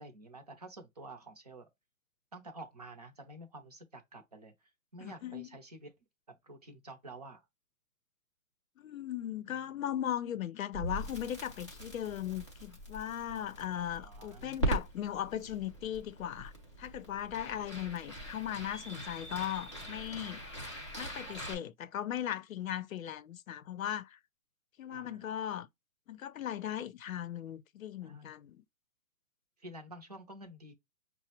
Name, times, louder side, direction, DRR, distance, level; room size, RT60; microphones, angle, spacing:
voice 1, 0.0-1.7 2.3-4.5 4.9-5.9 6.3-7.4 9.5-9.6 13.9-14.8 24.9-25.2 28.0-28.3 29.6-30.7, right 2 dB, 30° right, 0.5 m, -50 dB
voice 2, 5.0-5.5 8.8-16.5 16.8-20.4 21.0-24.2 24.8-25.7 26.1-28.6, left 11 dB, 75° left, 0.6 m, -38 dB
Crackle, 10.7-21.5, right 1 dB, 20° left, 0.4 m, -41 dB
5.7 x 2.0 x 2.8 m
hypercardioid pair, 175°, 41 cm